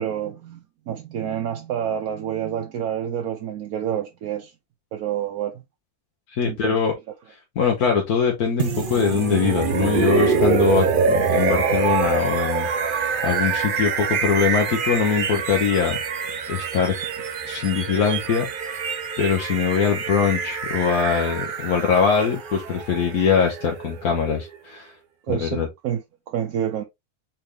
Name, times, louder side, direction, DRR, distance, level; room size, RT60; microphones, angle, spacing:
voice 1, 0.0-4.5 4.9-5.6 6.4-6.8 25.3-26.8, right 9 dB, 75° right, 1.2 m, -28 dB
voice 2, 6.3-6.9 7.6-16.0 16.5-16.9 17.4-18.9 19.2-24.9 25.3-25.7, left 6 dB, 75° left, 1.5 m, -22 dB
sound 1, 8.6-24.5, right 5 dB, 50° right, 0.6 m, -25 dB
4.3 x 3.8 x 3.2 m
omnidirectional pair, 1.6 m